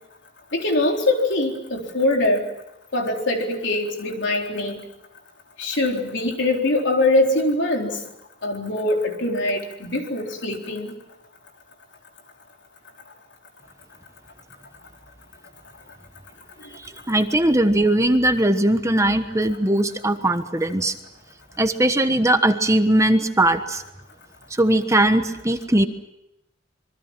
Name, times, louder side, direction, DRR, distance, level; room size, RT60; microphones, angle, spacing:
voice 1, 0.5-2.5 2.9-4.8 5.6-8.0 8.4-10.9, left 2 dB, 65° left, 2 dB, 4.1 m, -23 dB
voice 2, 17.1-20.9 21.6-23.8 24.5-25.9, right 1 dB, 15° right, 8 dB, 1.2 m, -19 dB
26.5 x 23.5 x 7.5 m, 0.89 s
head